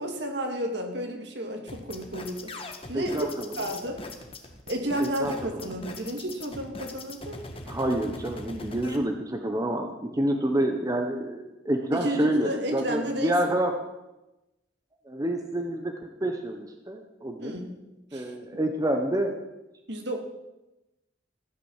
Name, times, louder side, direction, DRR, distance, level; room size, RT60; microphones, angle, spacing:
voice 1, 0.0-2.5 2.9-3.3 3.6-4.0 4.7-7.4 11.9-13.6 17.4-17.8 18.1-18.3 19.9-20.2, right 1 dB, 65° right, 3 dB, 2.7 m, -32 dB
sound 1, 1.7-9.0, left 2 dB, 30° left, 1.7 m, -40 dB
voice 2, 2.9-3.3 5.0-5.6 7.7-13.7 15.1-17.6 18.1-19.3, right 1 dB, 20° right, 4 dB, 1.2 m, -28 dB
15.0 x 9.7 x 7.4 m, 0.98 s
head